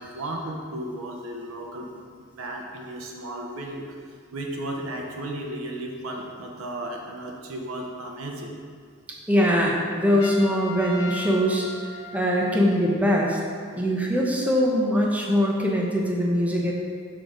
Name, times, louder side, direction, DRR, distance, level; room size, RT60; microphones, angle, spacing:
voice 1, 0.0-2.0 2.4-8.5, right 1 dB, 85° right, 1 dB, 0.8 m, -34 dB
voice 2, 9.3-11.7 12.1-13.4 13.8-16.7, equal, 5° right, -2 dB, 0.7 m, -22 dB
Trumpet, 10.2-12.9, left 2 dB, 80° left, 0.7 m, -38 dB
6.3 x 3.9 x 4.9 m, 2.1 s
head